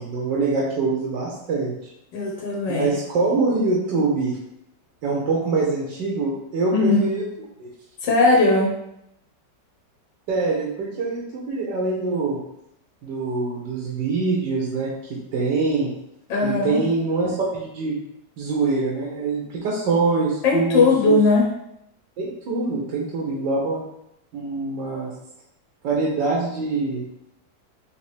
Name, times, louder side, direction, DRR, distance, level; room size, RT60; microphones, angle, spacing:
voice 1, 0.0-1.7 2.7-4.4 5.0-7.2 7.6-7.7 10.3-12.4 13.0-15.9 16.4-18.0 18.4-21.2 22.2-23.8 24.3-25.1 25.8-27.0, right 3 dB, 80° right, -4 dB, 1.4 m, -24 dB
voice 2, 2.1-2.9 6.7-7.0 8.0-8.7 16.3-16.8 20.4-21.5, left 3 dB, 85° left, -1 dB, 1.5 m, -18 dB
4.1 x 3.2 x 3.3 m, 0.79 s
omnidirectional pair, 1.9 m